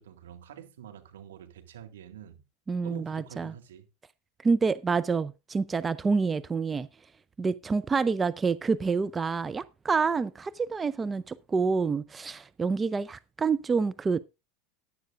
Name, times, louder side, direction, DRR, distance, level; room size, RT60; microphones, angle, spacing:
voice 1, 0.0-2.4 2.8-3.9, right 9 dB, 75° right, 1.8 m, -46 dB
voice 2, 2.7-3.5 4.4-6.9 7.4-14.2, right 4 dB, 20° right, 0.5 m, -27 dB
14.0 x 10.5 x 2.5 m
hypercardioid pair, 85°, 0 cm